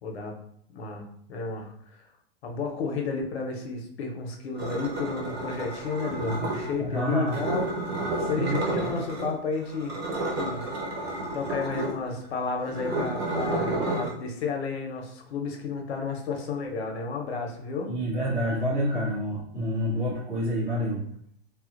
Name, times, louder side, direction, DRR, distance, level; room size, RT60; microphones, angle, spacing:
voice 1, 0.0-0.3 0.7-1.0 1.3-2.1 2.4-7.7 8.3-10.0 10.3-10.6 11.3-17.9, left 4 dB, 80° left, 2 dB, 0.8 m, -32 dB
sound 1, 4.5-6.7 7.3-9.3 9.6-14.1, right 2 dB, 75° right, 1.1 m, -31 dB
voice 2, 6.2-6.5 6.8-7.4 8.1-8.9 17.8-21.0, equal, 20° right, -11 dB, 1.5 m, -28 dB
3.4 x 2.4 x 2.5 m, 0.66 s
hypercardioid pair, 125°, 31 cm